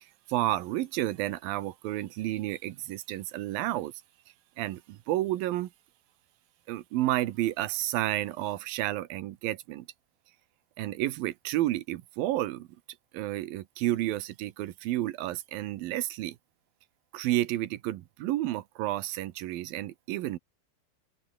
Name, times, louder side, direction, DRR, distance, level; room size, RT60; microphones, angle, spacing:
voice 1, 0.3-3.9 4.6-5.7 6.7-9.9 10.8-12.7 13.1-16.4 17.1-20.4, right 15 dB, 75° right, 2.5 m, -31 dB
open air
omnidirectional pair, 4.7 m